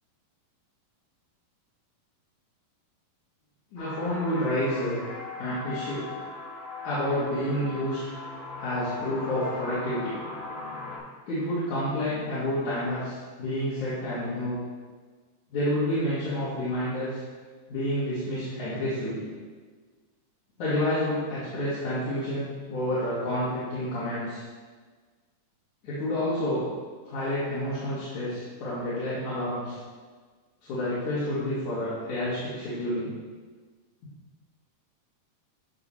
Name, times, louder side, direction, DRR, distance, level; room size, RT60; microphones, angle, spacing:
voice 1, 3.7-5.0 5.4-6.1 6.8-8.0 8.6-10.1 11.3-14.6 15.5-17.2 17.7-19.2 20.6-24.4 25.8-26.6 27.1-29.8 30.6-33.1, left 1 dB, 60° left, -12 dB, 3.6 m, -29 dB
sound 1, 3.8-11.0, left 3 dB, 40° left, 3.2 m, -39 dB
13.5 x 5.9 x 3.4 m, 1.5 s
omnidirectional pair, 3.9 m